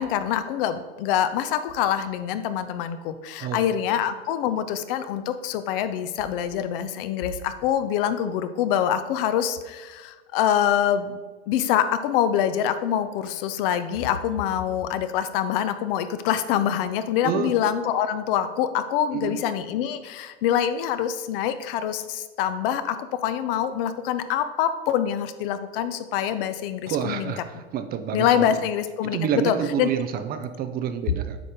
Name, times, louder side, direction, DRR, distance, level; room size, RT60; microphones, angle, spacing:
voice 1, 0.0-11.2 11.5-27.3 28.1-29.2 29.4-29.9, left 9 dB, 55° left, 11 dB, 0.7 m, -25 dB
voice 2, 17.2-17.5 19.1-19.3 26.9-28.5 29.0-31.4, right 8 dB, 30° right, 9 dB, 0.5 m, -28 dB
8.4 x 5.2 x 3.7 m, 1.3 s
hypercardioid pair, 110°, 33 cm